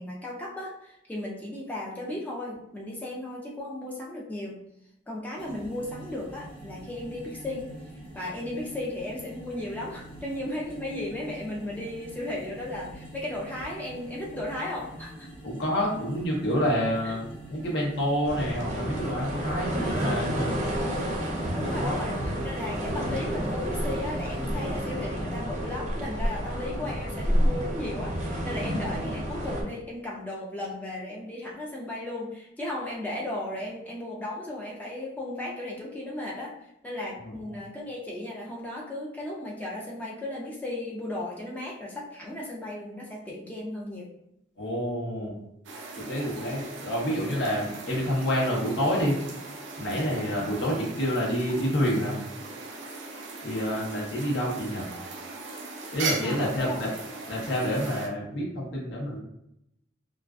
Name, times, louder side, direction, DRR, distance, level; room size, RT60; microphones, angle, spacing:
voice 1, 0.0-4.7 5.1-7.7 8.1-15.3 17.0-17.2 19.7-20.1 21.5-22.1 22.4-36.6 36.8-44.1 56.2-56.8, left 1 dB, 10° left, -4 dB, 0.3 m, -35 dB
sound 1, 5.4-24.8, right 1 dB, 35° left, 0.9 m, -45 dB
voice 2, 15.4-17.2 17.5-20.4 21.8-21.9 37.2-37.4 44.6-45.4 45.9-49.2 49.8-52.2 53.4-54.9 55.9-56.9 57.3-59.2, equal, 75° left, -4 dB, 0.8 m, -28 dB
sound 2, 18.3-29.6, equal, 40° right, 0.6 m, -30 dB
sound 3, 45.6-58.1, right 3 dB, 90° right, 0.5 m, -39 dB
2.4 x 2.3 x 2.2 m, 0.82 s
head